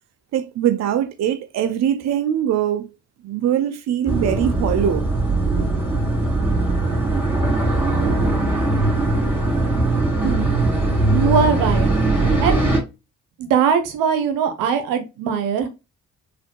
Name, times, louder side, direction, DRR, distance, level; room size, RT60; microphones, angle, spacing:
voice 1, 0.3-2.9 3.2-5.1, right 10 dB, 55° right, 0.5 m, -22 dB
sound 1, 4.1-12.8, right 2 dB, 5° right, 2.2 m, -20 dB
voice 2, 10.2-10.5 11.0-11.9 12.4-12.7 13.4-15.7, right 7 dB, 85° right, 0.8 m, -21 dB
4.1 x 2.6 x 2.9 m
supercardioid pair, 55°, 32 cm